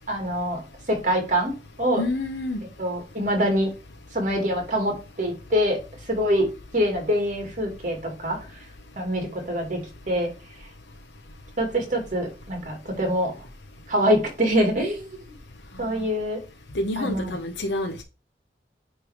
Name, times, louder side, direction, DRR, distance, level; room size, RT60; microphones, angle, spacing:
voice 1, 0.1-0.6 0.9-2.0 2.8-3.7 4.1-5.8 6.1-6.5 6.7-8.4 9.0-10.3 11.6-13.3 13.9-15.0 15.8-16.4 17.0-17.3, equal, 45° right, 2.6 m, -24 dB
voice 2, 2.0-2.6 16.7-18.0, left 1 dB, 90° left, 0.9 m, -28 dB
9.2 x 3.4 x 4.9 m
head